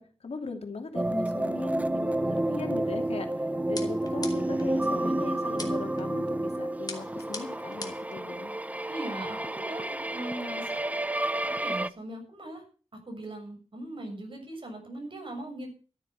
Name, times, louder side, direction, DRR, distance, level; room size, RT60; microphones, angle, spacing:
voice 1, 0.0-8.5, left 4 dB, 75° left, 4 dB, 2.9 m, -39 dB
sound 1, 1.0-11.9, right 1 dB, 15° right, 0.7 m, -30 dB
sound 2, 3.8-4.7 5.6-6.0 6.9-8.1, left 3 dB, 40° left, 2.5 m, -40 dB
voice 2, 8.9-10.8 11.4-12.6 13.1-15.7, right 1 dB, 55° right, 3 dB, 6.9 m, -39 dB
13.5 x 9.0 x 7.1 m, 0.38 s
wide cardioid pair, 90°, 11 cm